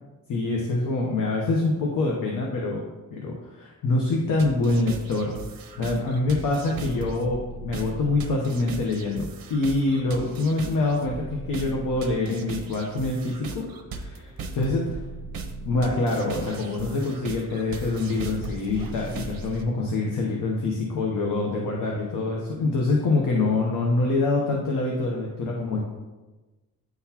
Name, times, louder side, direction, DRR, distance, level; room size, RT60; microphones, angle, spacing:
voice 1, 0.3-5.4 5.8-13.6 13.9-14.8 15.6-25.8, left 2 dB, 65° left, -1 dB, 0.9 m, -25 dB
sound 1, 4.4-19.6, right 4 dB, 80° right, 0.7 m, -37 dB
9.2 x 3.9 x 2.9 m, 1.2 s
wide cardioid pair, 160°, 35 cm